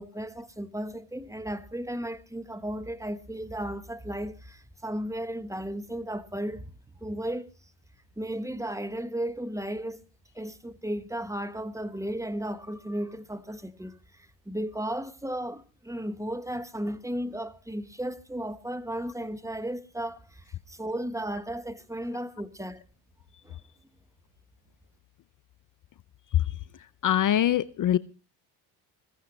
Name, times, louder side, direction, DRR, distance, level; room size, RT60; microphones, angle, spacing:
voice 1, 0.0-6.7 7.0-7.5 8.2-10.0 10.3-22.8 23.4-23.6, right 1 dB, 5° right, 1.2 m, -35 dB
voice 2, 27.0-28.0, left 11 dB, 40° left, 0.6 m, -23 dB
21.5 x 15.5 x 3.1 m
supercardioid pair, 70°, 48 cm